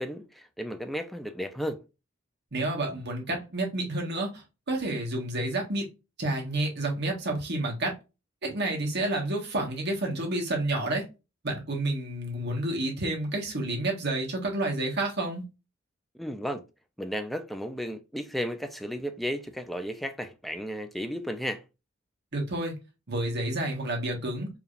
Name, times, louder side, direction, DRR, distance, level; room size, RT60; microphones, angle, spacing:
voice 1, 0.0-1.8 16.1-16.6 17.0-21.6, equal, ahead, 0.5 m, -34 dB
voice 2, 2.5-5.8 6.2-7.9 8.4-11.0 11.4-15.4 22.3-22.7 23.1-24.5, right 2 dB, 55° right, 1.7 m, -30 dB
4.9 x 3.3 x 2.5 m
head